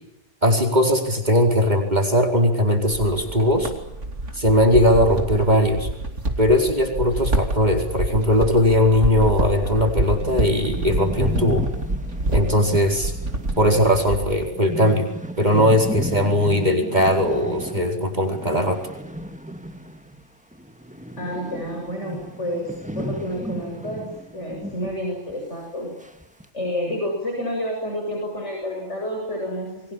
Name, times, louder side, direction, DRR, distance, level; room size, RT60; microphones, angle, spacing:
voice 1, 0.4-3.7 4.4-5.9 6.4-11.7 12.3-13.1 13.6-15.1 15.4-18.8, left 1 dB, 35° right, 3 dB, 4.8 m, -19 dB
sound 1, 2.9-14.5, right 2 dB, 80° right, 3.2 m, -27 dB
sound 2, 9.3-9.4 9.8-9.9 10.0-20.3 20.5-25.0 25.3-25.4 26.0-26.5, equal, 5° right, 2.0 m, -34 dB
voice 2, 21.2-25.9 26.5-29.9, equal, 75° left, 0 dB, 7.8 m, -29 dB
30.0 x 24.0 x 7.3 m, 0.88 s
omnidirectional pair, 1.2 m